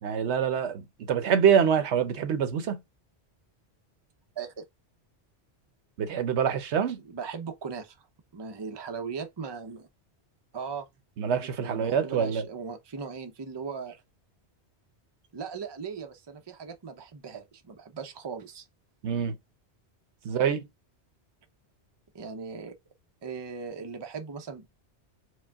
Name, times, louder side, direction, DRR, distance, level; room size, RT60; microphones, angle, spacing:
voice 1, 0.0-2.8 6.0-7.0 11.2-12.4 19.0-19.4 20.2-20.7, right 7 dB, 80° right, 1.0 m, -25 dB
voice 2, 7.0-8.1 8.3-9.9 10.5-10.9 11.4-14.0 15.3-18.7 22.1-22.7 23.2-24.7, right 5 dB, 30° right, 0.6 m, -38 dB
4.8 x 2.2 x 3.4 m
omnidirectional pair, 1.1 m